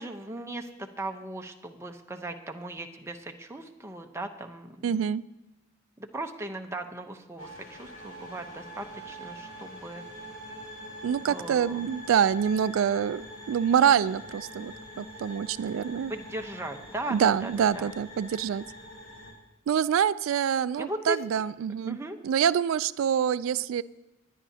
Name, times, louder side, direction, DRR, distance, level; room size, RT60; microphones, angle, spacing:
voice 1, 0.0-5.0 6.0-10.0 11.3-11.8 16.1-17.9 20.8-21.2 21.9-22.2, right 1 dB, 15° right, 4 dB, 0.8 m, -38 dB
voice 2, 4.8-5.2 11.0-16.1 17.1-18.6 19.7-22.0 22.2-23.8, right 8 dB, 80° right, 15 dB, 0.3 m, -26 dB
sound 1, 7.4-19.3, equal, 75° left, 3.3 m, -44 dB
27.5 x 10.0 x 2.8 m, 0.99 s
head